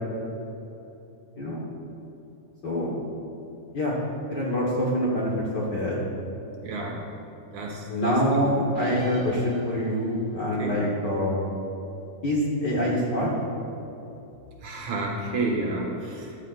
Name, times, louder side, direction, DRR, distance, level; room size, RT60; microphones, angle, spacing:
voice 1, 2.6-3.0 3.7-4.0 4.3-6.0 7.9-11.4 12.2-13.3, equal, 50° left, -5 dB, 1.4 m, -25 dB
voice 2, 6.6-7.0 7.5-8.2 9.0-9.1 10.6-10.8 14.6-16.3, right 2 dB, 70° right, -2 dB, 2.8 m, -30 dB
sound 1, 8.7-10.1, right 2 dB, 40° right, 1.6 m, -41 dB
14.5 x 11.5 x 2.5 m, 2.8 s
omnidirectional pair, 3.3 m